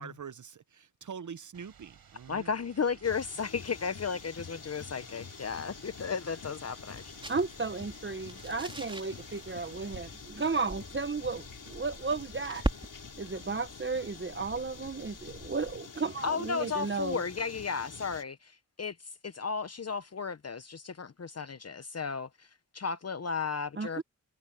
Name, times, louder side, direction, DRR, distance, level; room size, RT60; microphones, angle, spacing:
voice 1, 0.0-2.5, right 7 dB, 55° right, 1.1 m, -44 dB
sound 1, 1.5-10.0, right 7 dB, 80° right, 6.0 m, -57 dB
voice 2, 2.3-7.1 16.2-24.0, left 5 dB, 45° left, 1.0 m, -34 dB
sound 2, 3.0-18.2, left 5 dB, 60° left, 3.1 m, -47 dB
sound 3, 5.5-15.9, right 1 dB, 15° right, 4.9 m, -43 dB
voice 3, 7.3-12.6 13.2-17.2 23.8-24.0, right 4 dB, 30° right, 1.3 m, -34 dB
cardioid pair, 45°, 36 cm